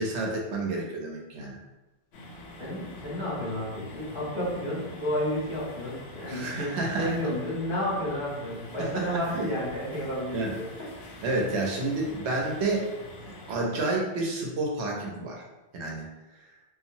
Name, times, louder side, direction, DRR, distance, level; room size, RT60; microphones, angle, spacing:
voice 1, 0.0-1.6 6.3-7.1 8.8-9.5 10.3-10.5 11.2-12.9 13.5-15.4 15.7-16.0, right 2 dB, 75° right, -1 dB, 0.9 m, -30 dB
sound 1, 2.1-13.6, left 1 dB, 70° left, 0.9 m, -46 dB
voice 2, 2.6-10.7, left 1 dB, 50° left, -9 dB, 1.3 m, -31 dB
2.8 x 2.2 x 2.6 m, 1.1 s
omnidirectional pair, 1.2 m